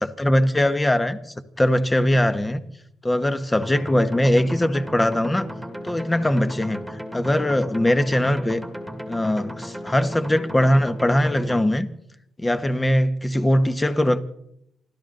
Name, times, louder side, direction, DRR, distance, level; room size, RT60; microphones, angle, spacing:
voice 1, 0.0-1.2 1.6-2.6 3.0-5.5 5.8-8.6 9.1-11.9 12.4-14.2, left 1 dB, 15° left, 10 dB, 1.4 m, -21 dB
sound 1, 3.6-11.6, equal, ahead, 2.1 m, -35 dB
28.5 x 12.5 x 3.9 m, 0.76 s
cardioid pair, 90°, 0 cm